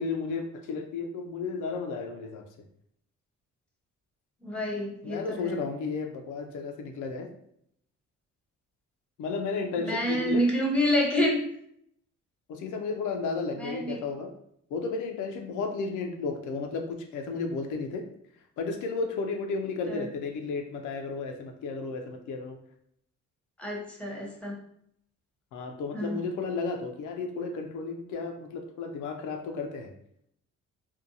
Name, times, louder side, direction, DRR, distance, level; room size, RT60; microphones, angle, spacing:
voice 1, 0.0-2.4 5.0-7.3 9.2-10.4 12.5-14.3 14.7-18.0 18.6-22.6 25.5-29.9, left 4 dB, 80° left, 4 dB, 0.5 m, -33 dB
voice 2, 4.4-5.6 9.8-11.4 13.6-14.0 19.9-20.1 23.6-24.6 25.9-26.2, equal, 5° left, -1 dB, 0.7 m, -28 dB
2.6 x 2.2 x 2.6 m, 0.70 s
cardioid pair, 90°, 30 cm